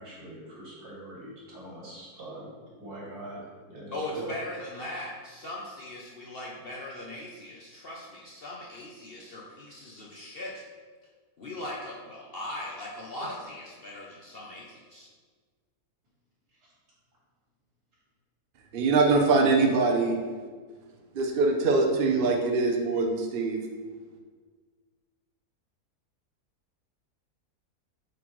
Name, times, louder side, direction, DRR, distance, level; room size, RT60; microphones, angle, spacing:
voice 1, 0.0-2.5 2.8-3.4 3.7-4.3 4.9-5.0 16.6-16.7, right 1 dB, 80° right, -6 dB, 2.5 m, -43 dB
voice 2, 3.9-10.6 11.4-15.1, left 1 dB, 55° left, -3 dB, 0.7 m, -39 dB
voice 3, 18.7-20.2 21.1-23.6, right 3 dB, 50° right, 1 dB, 0.7 m, -23 dB
7.8 x 4.1 x 3.1 m, 1.5 s
omnidirectional pair, 1.7 m